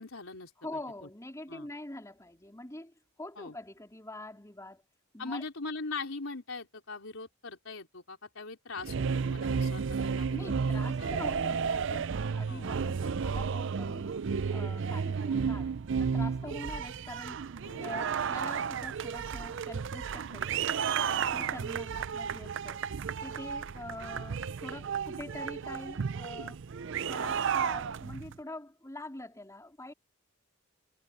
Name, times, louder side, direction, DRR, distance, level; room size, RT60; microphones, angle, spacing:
voice 1, 0.0-0.5 1.0-1.1 1.5-1.7 3.4-3.6 5.2-11.2 12.5-12.7 16.4-16.5 17.6-17.9 21.3-21.5, left 3 dB, 75° left, 3.7 m, -41 dB
voice 2, 0.6-4.8 5.1-5.4 10.3-14.2 14.5-17.4 17.8-20.7 21.1-22.8 23.2-26.6 27.1-29.9, left 1 dB, 15° left, 3.9 m, -44 dB
sound 1, 8.8-28.3, right 6 dB, 60° right, 0.5 m, -33 dB
head